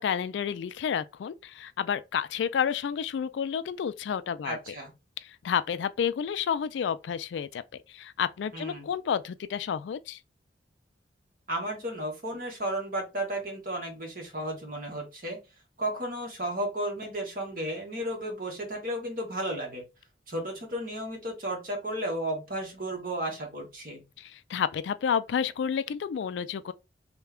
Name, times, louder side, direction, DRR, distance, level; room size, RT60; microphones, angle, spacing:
voice 1, 0.0-4.8 5.2-7.6 7.9-10.2 24.2-26.7, left 7 dB, 75° left, 0.3 m, -30 dB
voice 2, 4.4-4.9 8.5-8.9 11.5-15.4 15.8-19.8 20.3-24.0, right 1 dB, 50° right, 1.3 m, -33 dB
3.3 x 2.2 x 3.5 m
head